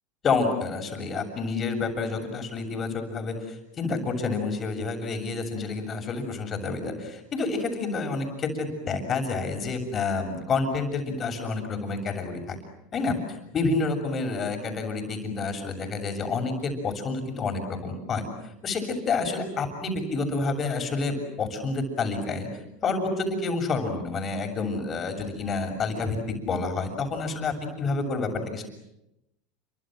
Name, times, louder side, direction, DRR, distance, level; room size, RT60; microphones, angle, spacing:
voice 1, 0.2-12.6 12.9-18.2 18.6-22.5 22.8-28.6, left 4 dB, 30° left, 5 dB, 7.2 m, -29 dB
29.5 x 25.0 x 7.9 m, 0.85 s
supercardioid pair, 115°, 0 cm